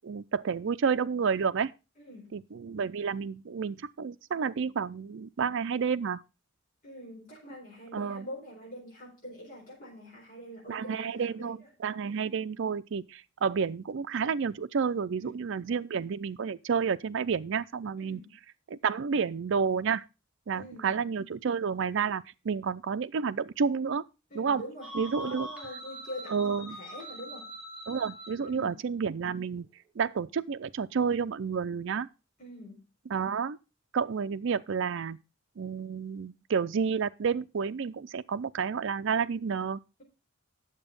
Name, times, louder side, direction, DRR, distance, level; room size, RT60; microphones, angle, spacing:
voice 1, 0.0-1.7 2.3-6.2 7.9-8.3 10.7-18.2 18.7-20.0 20.5-24.0 24.3-24.6 24.9-25.5 26.3-26.8 27.9-29.7 30.0-32.1 33.1-33.6 33.9-35.2 35.6-39.8, right 6 dB, 65° right, 0.4 m, -30 dB
voice 2, 2.0-2.4 6.8-11.5 12.0-12.1 15.2-15.5 18.0-18.3 20.5-21.0 24.3-24.9 25.2-27.5 28.4-28.8 32.4-32.9, equal, 45° left, 4.4 m, -45 dB
sound 1, 24.8-28.5, equal, 5° right, 3.6 m, -43 dB
9.0 x 7.2 x 5.2 m
head